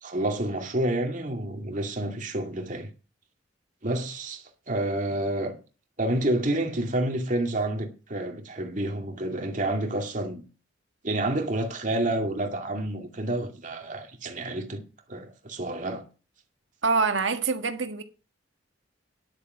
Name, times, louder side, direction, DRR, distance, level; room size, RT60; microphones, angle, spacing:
voice 1, 0.0-2.9 3.8-5.6 6.0-10.4 11.0-14.8 15.1-16.0, right 1 dB, 40° right, 2.3 m, -29 dB
voice 2, 16.8-18.0, right 4 dB, 75° right, 1.6 m, -25 dB
10.5 x 8.6 x 5.6 m
head